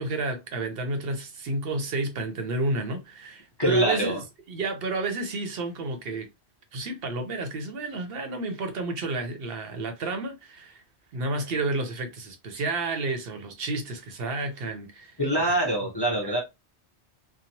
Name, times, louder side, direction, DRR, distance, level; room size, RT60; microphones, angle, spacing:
voice 1, 0.0-4.2 4.5-6.3 6.7-10.8 11.1-15.5 16.2-16.3, right 2 dB, 65° right, 0.8 m, -31 dB
voice 2, 3.6-4.2 15.2-16.4, right 1 dB, 30° left, 0.6 m, -24 dB
2.9 x 2.2 x 2.6 m
omnidirectional pair, 1.1 m